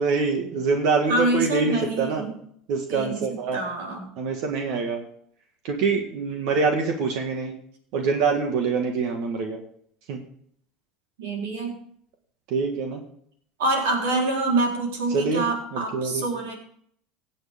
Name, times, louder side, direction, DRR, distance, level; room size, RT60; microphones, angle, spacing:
voice 1, 0.0-2.3 2.7-3.6 4.2-5.0 5.6-7.6 7.9-9.6 10.1-10.2 12.5-13.0 15.1-15.4 15.7-16.2, right 4 dB, 65° right, 3 dB, 1.8 m, -25 dB
voice 2, 1.1-2.3 2.9-4.1 11.2-11.8 13.6-16.5, right 2 dB, 90° right, 0 dB, 4.0 m, -26 dB
17.0 x 7.4 x 3.7 m, 0.64 s
supercardioid pair, 105°, 0 cm